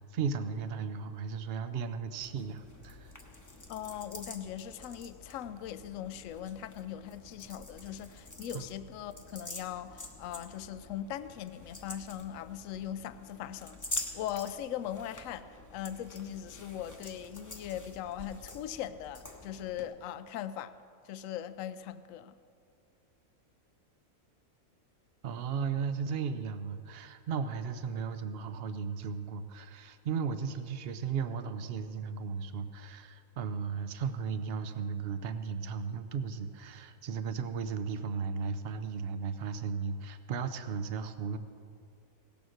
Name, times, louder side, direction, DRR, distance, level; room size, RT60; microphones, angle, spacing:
voice 1, 0.0-3.1 8.5-8.6 25.2-41.4, right 6 dB, 55° right, 9 dB, 0.7 m, -35 dB
sound 1, 2.2-19.8, left 2 dB, 15° left, 0.8 m, -46 dB
voice 2, 3.7-13.8 14.1-20.7 21.0-22.4, left 10 dB, 70° left, 13 dB, 0.9 m, -40 dB
17.0 x 7.1 x 6.3 m, 2.3 s
omnidirectional pair, 1.6 m